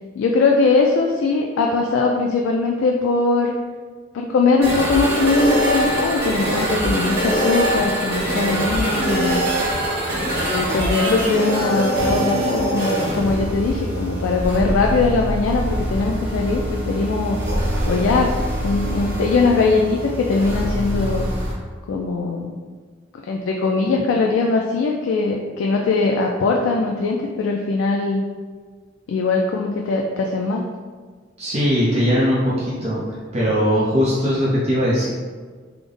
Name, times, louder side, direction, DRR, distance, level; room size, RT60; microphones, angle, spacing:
voice 1, 0.1-3.5 4.1-9.4 10.4-17.4 17.9-18.3 18.6-21.3 21.9-22.6 23.3-28.2 29.1-30.6, left 3 dB, 90° left, 0 dB, 0.3 m, -20 dB
sound 1, 4.6-21.5, equal, 55° right, 1.1 m, -23 dB
voice 2, 31.4-33.0 33.3-35.1, equal, 35° right, -8 dB, 0.5 m, -19 dB
3.4 x 2.0 x 3.6 m, 1.5 s
head